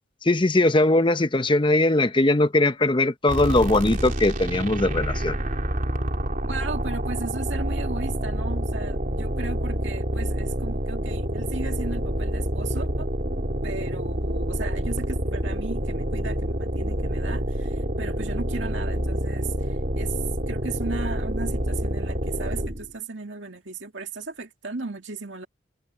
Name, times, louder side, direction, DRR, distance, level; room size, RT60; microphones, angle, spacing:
voice 1, 0.2-5.4, left 2 dB, 25° left, 0.8 m, -20 dB
sound 1, 3.3-22.9, equal, 45° right, 3.6 m, -27 dB
voice 2, 6.4-13.1 13.6-25.5, right 3 dB, 70° right, 2.2 m, -36 dB
head